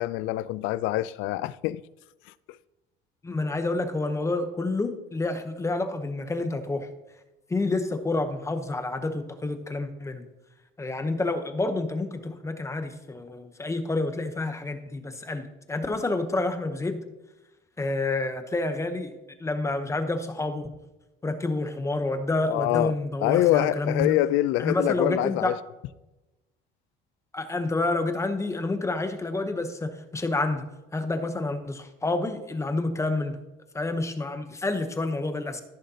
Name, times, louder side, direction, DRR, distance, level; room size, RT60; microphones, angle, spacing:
voice 1, 0.0-1.8 22.5-22.9 23.2-25.6, left 15 dB, 90° left, 0.4 m, -25 dB
voice 2, 3.2-6.9 7.5-10.3 10.8-17.0 17.8-19.1 19.4-20.7 21.2-24.2 24.6-25.6 27.3-30.7 30.9-33.4 33.7-35.6, left 2 dB, 15° left, 0.8 m, -28 dB
15.0 x 6.4 x 2.8 m
cardioid pair, 140°, 19 cm